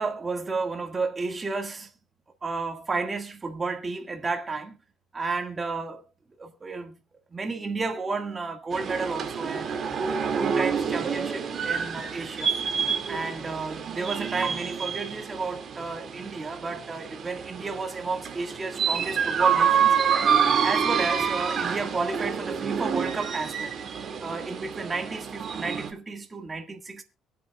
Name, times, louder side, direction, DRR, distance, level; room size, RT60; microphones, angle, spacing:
voice 1, 0.0-1.9 2.4-4.8 5.1-6.0 6.4-6.9 7.3-9.7 10.0-12.5 13.1-20.0 20.6-23.7 24.2-27.0, right 3 dB, 25° right, 1.6 m, -32 dB
sound 1, 8.7-25.9, right 7 dB, 40° right, 2.0 m, -28 dB
23.0 x 8.3 x 2.2 m
cardioid pair, 115°, 0 cm